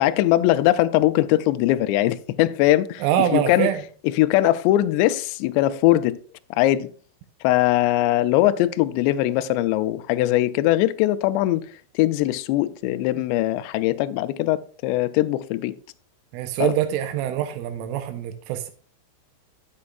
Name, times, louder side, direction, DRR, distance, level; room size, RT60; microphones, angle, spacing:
voice 1, 0.0-3.7 4.0-6.2 6.5-6.9 7.4-11.7 12.0-15.8 16.6-16.8, left 15 dB, 90° left, 2.5 m, -21 dB
voice 2, 3.0-3.8 16.3-18.7, right 11 dB, 85° right, 3.3 m, -24 dB
12.5 x 8.7 x 2.4 m
omnidirectional pair, 5.6 m